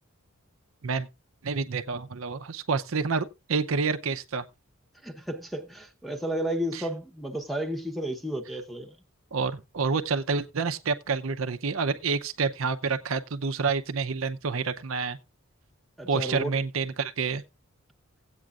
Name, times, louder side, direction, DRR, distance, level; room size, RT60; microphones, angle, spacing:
voice 1, 1.4-4.4 6.7-6.8 9.3-15.2 16.1-17.4, right 4 dB, 75° right, 0.7 m, -28 dB
voice 2, 5.0-9.0 16.0-16.6, right 1 dB, ahead, 0.9 m, -32 dB
17.0 x 8.4 x 2.4 m
head